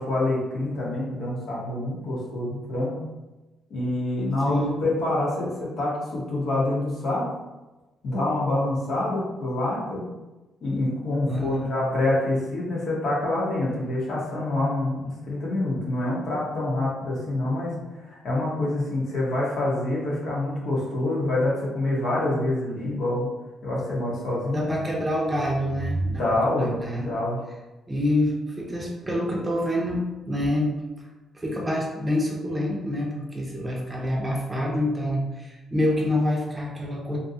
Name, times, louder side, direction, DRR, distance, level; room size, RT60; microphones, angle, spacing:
voice 1, 0.0-3.0 3.7-7.3 8.0-10.0 10.6-23.3 23.6-24.7 26.1-27.4, left 2 dB, 65° left, -5 dB, 1.0 m, -26 dB
voice 2, 4.5-4.8 11.3-11.8 24.5-26.2 26.6-27.1 27.9-30.7 31.3-37.2, left 1 dB, 20° right, -2 dB, 0.6 m, -26 dB
2.6 x 2.3 x 2.7 m, 1.1 s
cardioid pair, 90°, 0 cm